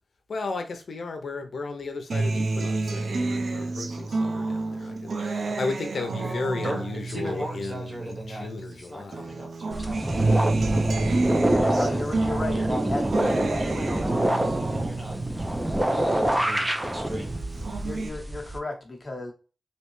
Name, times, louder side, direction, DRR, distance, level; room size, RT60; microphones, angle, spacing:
voice 1, 0.3-9.3, left 3 dB, 75° left, 0.6 m, -34 dB
Acoustic guitar, 2.1-8.7 9.1-16.7 17.1-18.1, right 3 dB, 70° right, 0.4 m, -29 dB
voice 2, 6.6-10.6 11.5-17.4, right 1 dB, 30° right, 1.2 m, -38 dB
sound 1, 9.7-18.6, right 1 dB, 15° right, 0.5 m, -26 dB
voice 3, 11.8-12.6 12.9-13.0 17.8-19.3, left 2 dB, 30° left, 0.9 m, -33 dB
3.2 x 2.7 x 3.0 m
wide cardioid pair, 135°, 0 cm